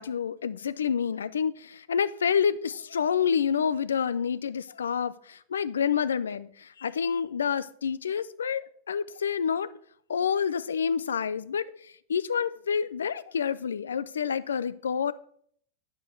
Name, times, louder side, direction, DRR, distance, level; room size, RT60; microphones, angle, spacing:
voice 1, 0.0-9.7 10.1-15.1, left 7 dB, 85° left, 16 dB, 0.5 m, -28 dB
8.9 x 7.7 x 4.5 m, 0.62 s
hypercardioid pair, 105°, 0 cm